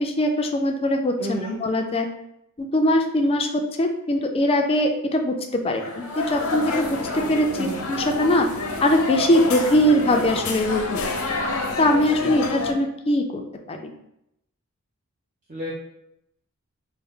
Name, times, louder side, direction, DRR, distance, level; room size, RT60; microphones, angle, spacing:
voice 1, 0.0-2.1 2.6-8.5 8.8-11.0 11.8-13.4 13.7-13.9, left 1 dB, 25° left, 4 dB, 0.4 m, -22 dB
voice 2, 1.2-1.6 7.5-7.9 9.8-9.9 12.1-12.5 15.5-15.7, right 1 dB, 40° right, -5 dB, 0.6 m, -33 dB
sound 1, 5.7-12.7, left 3 dB, 85° left, 0.6 m, -28 dB
4.3 x 2.0 x 3.5 m, 0.81 s
head